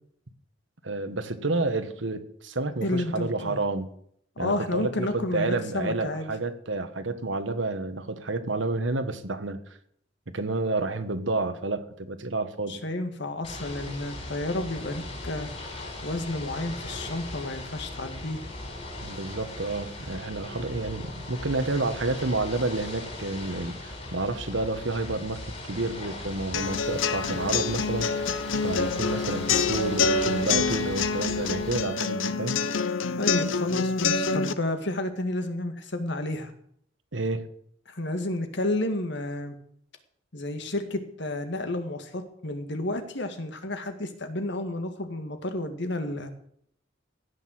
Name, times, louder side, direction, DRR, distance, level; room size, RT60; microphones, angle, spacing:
voice 1, 0.8-3.9 4.4-9.6 10.3-12.8 19.0-28.1 28.6-32.6 37.1-37.4, right 2 dB, 70° right, 10 dB, 1.4 m, -30 dB
voice 2, 2.8-3.6 4.4-6.3 12.7-15.5 16.0-18.4 33.2-36.5 37.9-39.6 40.3-46.3, left 1 dB, 65° left, 7 dB, 1.9 m, -31 dB
Ocean / Boat Water vehicle, 13.4-31.8, left 2 dB, 35° left, 6.0 m, -39 dB
sound 1, 26.5-34.5, left 4 dB, 90° left, 0.8 m, -26 dB
16.0 x 6.6 x 7.7 m, 0.67 s
head